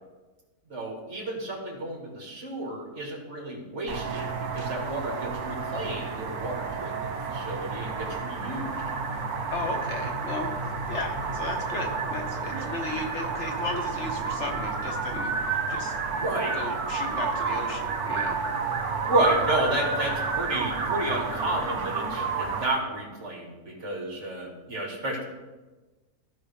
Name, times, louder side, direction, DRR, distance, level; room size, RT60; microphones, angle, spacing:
voice 1, 0.7-8.8 16.1-16.6 19.0-25.2, right 2 dB, 50° right, -1 dB, 2.1 m, -31 dB
sound 1, 3.9-22.7, right 4 dB, 85° right, 1.5 m, -30 dB
voice 2, 9.5-16.0 16.5-18.4, left 3 dB, 55° left, 3 dB, 1.0 m, -35 dB
15.0 x 5.2 x 3.4 m, 1.2 s
omnidirectional pair, 1.6 m